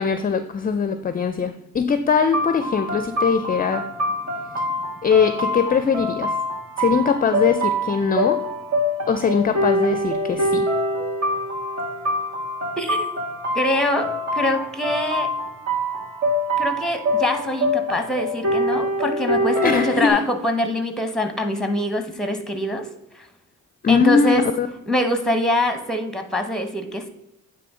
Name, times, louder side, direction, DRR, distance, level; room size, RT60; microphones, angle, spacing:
voice 1, 0.0-3.9 4.5-4.7 5.0-6.4 6.8-8.4 9.1-10.7 19.6-20.2 23.8-24.7, left 6 dB, 30° left, 10 dB, 0.5 m, -21 dB
sound 1, 2.3-20.1, equal, 55° right, 2.1 m, -25 dB
voice 2, 12.8-13.1 13.5-15.3 16.6-22.9 23.1-23.3 23.9-24.4 24.9-27.1, left 1 dB, ahead, 6 dB, 1.2 m, -24 dB
9.3 x 3.2 x 4.9 m, 0.88 s
cardioid pair, 90°, 30 cm